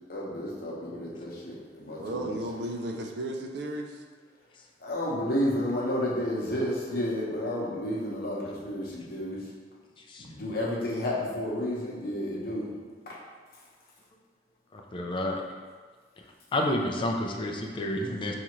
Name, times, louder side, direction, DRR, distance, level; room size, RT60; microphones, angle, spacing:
voice 1, 0.1-2.4 4.8-9.5 10.2-12.6 13.1-13.2, left 1 dB, 55° left, -4 dB, 0.8 m, -31 dB
voice 2, 2.0-4.0, right 1 dB, 70° right, 3 dB, 0.4 m, -34 dB
voice 3, 14.7-15.4 16.5-18.3, left 1 dB, 30° left, 1 dB, 0.4 m, -30 dB
5.4 x 2.5 x 3.0 m, 1.5 s
head